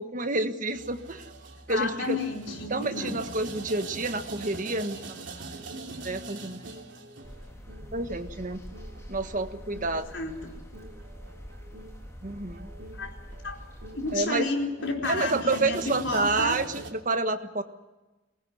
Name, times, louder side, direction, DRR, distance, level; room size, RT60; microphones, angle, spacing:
voice 1, 0.0-1.3 1.7-2.2 2.7-5.5 6.0-6.6 7.9-8.6 9.1-10.1 12.2-12.7 14.1-14.5 15.0-17.6, right 2 dB, 40° right, 9 dB, 1.5 m, -29 dB
sound 1, 0.7-16.9, right 2 dB, 70° right, 3.1 m, -43 dB
voice 2, 1.7-3.2 10.1-10.5 13.0-13.1 13.4-13.6 13.9-15.8 16.0-16.6, left 3 dB, 65° left, 1 dB, 4.6 m, -31 dB
sound 2, 7.2-14.2, equal, 15° left, 3.5 m, -45 dB
22.5 x 19.5 x 9.7 m, 1.1 s
head